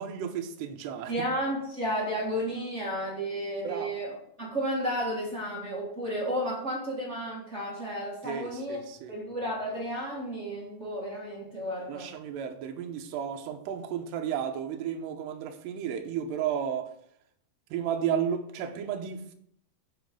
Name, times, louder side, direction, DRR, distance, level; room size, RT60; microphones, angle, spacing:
voice 1, 0.0-1.1 3.6-4.0 8.2-9.1 11.9-16.9 17.7-19.3, right 8 dB, 85° right, 2.9 m, -33 dB
voice 2, 1.1-8.8 9.1-12.1, equal, 40° right, 0.9 m, -32 dB
9.1 x 5.2 x 5.3 m
omnidirectional pair, 4.9 m